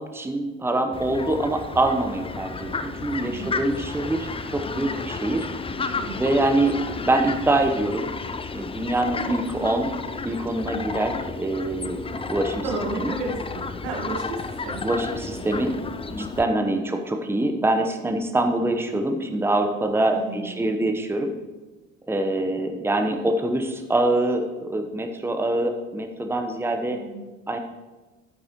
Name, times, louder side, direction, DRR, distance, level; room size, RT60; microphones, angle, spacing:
voice 1, 0.0-5.5 6.2-8.1 8.5-9.9 10.2-12.0 12.3-12.7 13.0-13.1 14.8-15.7 16.0-21.3 22.1-27.0 27.5-27.6, right 2 dB, 5° right, 5 dB, 1.0 m, -24 dB
Fowl, 0.9-16.4, left 4 dB, 15° left, 0.5 m, -32 dB
voice 2, 3.2-3.6 5.9-6.3 12.6-15.0 15.4-15.5 16.6-16.8 20.1-20.7 26.9-27.3, right 3 dB, 70° right, 0 dB, 1.8 m, -33 dB
12.0 x 9.2 x 3.1 m, 1.2 s
figure-of-eight pair, 55°, 39 cm